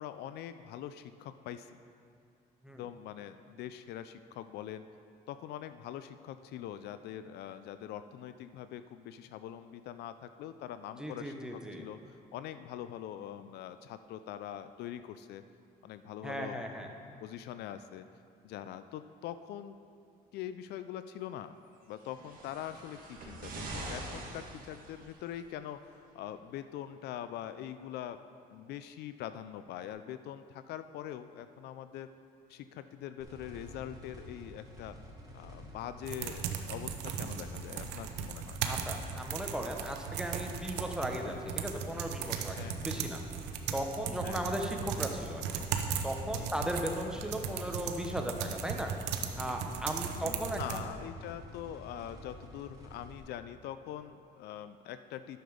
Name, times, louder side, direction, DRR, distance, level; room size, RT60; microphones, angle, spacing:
voice 1, 0.0-1.8 2.8-4.9 5.3-15.4 15.8-16.9 17.2-18.0 18.4-19.8 20.3-21.6 21.9-28.2 28.5-32.1 32.5-35.0 35.3-38.6 42.5-43.0 44.2-44.5 46.3-46.7 50.1-55.4, left 11 dB, 75° left, 11 dB, 0.4 m, -43 dB
voice 2, 11.0-11.8 16.2-16.9 38.6-43.2 43.7-45.6 46.0-48.9 49.4-50.6, equal, 5° right, 2 dB, 1.0 m, -37 dB
sound 1, 22.0-25.4 26.3-26.4, right 2 dB, 55° right, 1.8 m, -44 dB
sound 2, 33.2-53.2, left 1 dB, 20° right, 2.4 m, -50 dB
sound 3, 36.1-50.8, right 7 dB, 85° right, 0.8 m, -37 dB
10.5 x 6.7 x 5.1 m, 2.3 s
cardioid pair, 110°, 17 cm